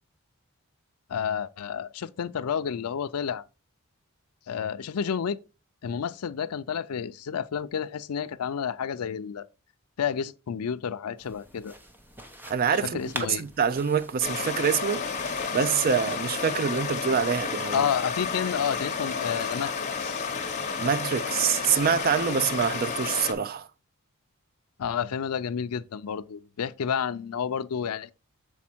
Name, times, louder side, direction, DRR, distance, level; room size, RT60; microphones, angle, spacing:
voice 1, 1.1-3.4 4.5-5.4 5.8-9.5 10.0-11.7 12.8-13.4 17.7-20.3 24.8-28.1, left 7 dB, 85° left, 0.4 m, -30 dB
sound 1, 11.2-16.2, right 1 dB, 10° right, 0.7 m, -44 dB
voice 2, 12.5-13.0 13.3-15.0 15.5-17.9 20.8-23.7, right 7 dB, 40° right, 0.4 m, -25 dB
Stream, 14.2-23.3, left 5 dB, 30° left, 1.0 m, -31 dB
7.2 x 4.3 x 4.3 m
head